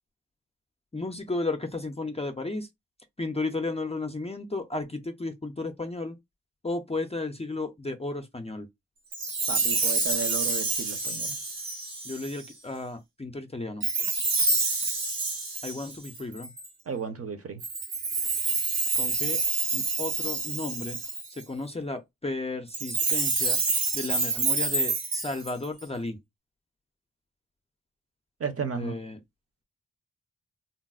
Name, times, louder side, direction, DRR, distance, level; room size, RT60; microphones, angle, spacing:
voice 1, 0.9-2.7 3.2-6.2 6.6-8.7 12.0-13.8 15.6-16.5 18.9-19.4 19.7-21.0 21.3-23.6 23.9-26.2 28.7-29.2, left 2 dB, 20° left, 0.4 m, -33 dB
Chime, 9.1-12.5 13.8-16.7 17.6-21.4 22.7-25.8, right 3 dB, 90° right, 0.9 m, -28 dB
voice 2, 9.5-11.4 16.9-17.6 28.4-28.9, right 6 dB, 45° right, 0.6 m, -34 dB
3.9 x 2.0 x 2.3 m
wide cardioid pair, 115°, 33 cm